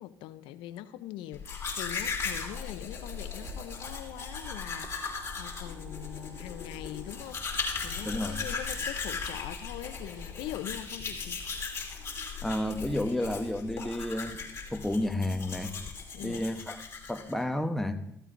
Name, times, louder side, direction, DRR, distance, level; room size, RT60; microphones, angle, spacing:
voice 1, 0.0-11.4 16.1-16.5, left 13 dB, 80° left, 0.6 m, -42 dB
Domestic sounds home sounds, 1.3-17.4, left 5 dB, 35° left, 3.0 m, -37 dB
sound 1, 3.0-10.6, right 3 dB, 25° right, 1.0 m, -50 dB
voice 2, 8.0-8.4 12.4-14.4 14.7-15.7 16.2-16.8 17.1-18.0, left 1 dB, 5° left, 0.9 m, -31 dB
14.5 x 14.0 x 2.6 m
cardioid pair, 90°, 8 cm